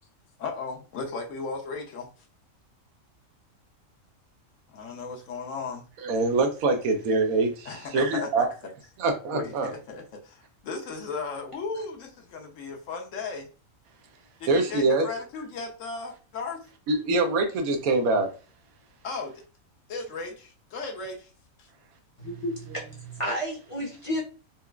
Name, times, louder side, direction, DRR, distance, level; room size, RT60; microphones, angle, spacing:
voice 1, 0.4-2.1 4.7-5.8 7.6-8.7 9.3-13.5 14.4-16.7 19.0-19.3 19.9-21.3 21.6-21.7, left 4 dB, 70° left, 1.0 m, -36 dB
voice 2, 6.0-8.5 9.0-9.7 14.5-15.1 16.9-18.3, right 3 dB, 85° right, 1.1 m, -24 dB
voice 3, 22.2-24.2, equal, 35° left, 0.6 m, -32 dB
4.0 x 2.3 x 2.2 m
omnidirectional pair, 1.4 m